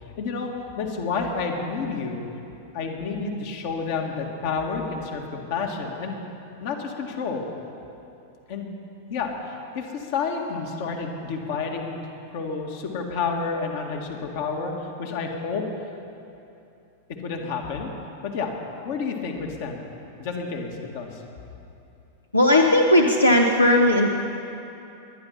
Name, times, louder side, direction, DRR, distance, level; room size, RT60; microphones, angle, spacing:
voice 1, 0.2-0.5 0.8-2.2 2.7-6.2 6.6-7.5 8.5-8.7 9.1-12.0 12.3-14.7 15.0-15.6 17.2-17.9 18.2-18.5 18.8-19.8 20.2-21.2, left 5 dB, 50° left, 2 dB, 2.0 m, -30 dB
voice 2, 22.3-24.1, left 1 dB, 80° left, 2 dB, 0.9 m, -17 dB
21.5 x 10.5 x 5.8 m, 2.8 s
figure-of-eight pair, 90°, 0 cm